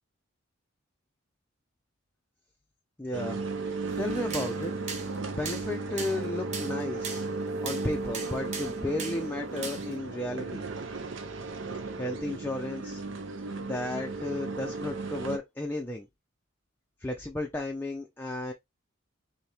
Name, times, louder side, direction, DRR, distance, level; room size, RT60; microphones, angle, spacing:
voice 1, 3.0-3.4 4.0-4.7 5.3-7.2 7.6-10.6 12.0-13.0 13.6-16.1 17.0-18.5, left 1 dB, 10° left, 0.5 m, -33 dB
sound 1, 3.1-15.4, right 3 dB, 65° right, 0.7 m, -35 dB
sound 2, 3.9-10.0, right 4 dB, 35° right, 0.8 m, -40 dB
4.2 x 2.8 x 3.3 m
head